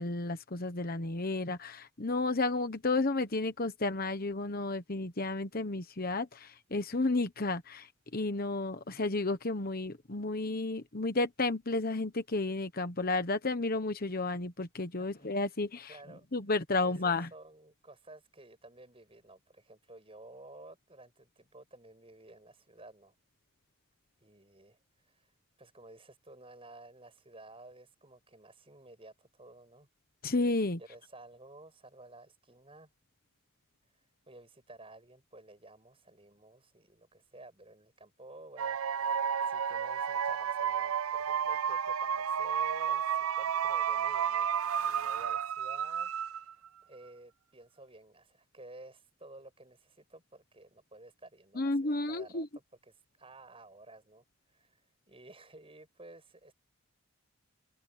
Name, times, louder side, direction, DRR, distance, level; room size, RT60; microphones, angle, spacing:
voice 1, 0.0-16.0 16.3-17.3 30.2-30.8 51.5-52.5, left 2 dB, 45° left, 1.2 m, -32 dB
voice 2, 15.9-16.3 16.8-23.1 24.2-24.8 25.1-25.3 25.6-29.9 30.8-32.9 34.3-46.6 46.9-54.2 54.5-56.5, right 2 dB, 25° right, 7.8 m, -53 dB
sound 1, 38.6-46.7, right 8 dB, 75° right, 0.5 m, -32 dB
open air
head